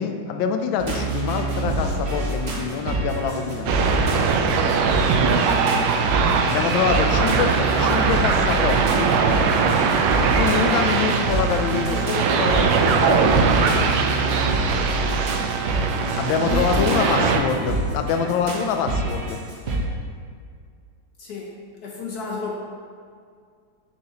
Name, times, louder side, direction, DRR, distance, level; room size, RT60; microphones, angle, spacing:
voice 1, 0.0-4.1 6.4-9.2 10.2-13.7 16.1-19.4, left 6 dB, 80° left, 6 dB, 1.4 m, -25 dB
sound 1, 0.8-19.8, right 2 dB, 45° right, 0.9 m, -27 dB
sound 2, 3.7-17.4, right 5 dB, 75° right, 1.2 m, -21 dB
voice 2, 7.7-8.1 11.9-12.1 16.3-17.8 18.2-18.3 21.2-22.5, left 3 dB, 60° left, -2 dB, 1.1 m, -31 dB
7.2 x 6.2 x 2.9 m, 2.1 s
omnidirectional pair, 2.1 m